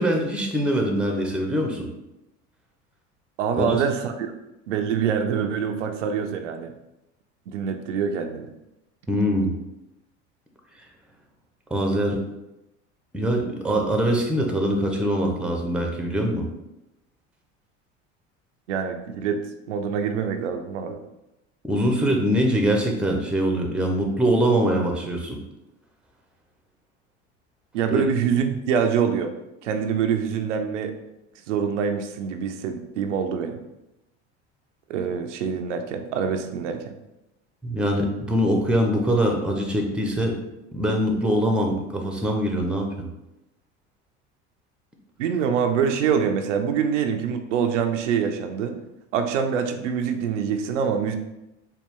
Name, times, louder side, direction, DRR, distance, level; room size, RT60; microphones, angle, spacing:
voice 1, 0.0-1.9 3.6-3.8 9.1-9.5 11.7-12.2 13.1-16.5 21.7-25.4 27.9-28.0 37.6-40.4 40.7-43.1, equal, 5° right, 2 dB, 0.7 m, -23 dB
voice 2, 3.4-4.3 4.7-6.7 7.5-8.5 18.7-19.4 19.7-21.0 27.7-29.3 29.6-30.9 31.5-33.6 34.9-37.0 45.2-48.8 49.1-51.2, right 7 dB, 85° right, 6 dB, 0.5 m, -25 dB
4.2 x 2.4 x 3.6 m, 0.93 s
hypercardioid pair, 80°, 35 cm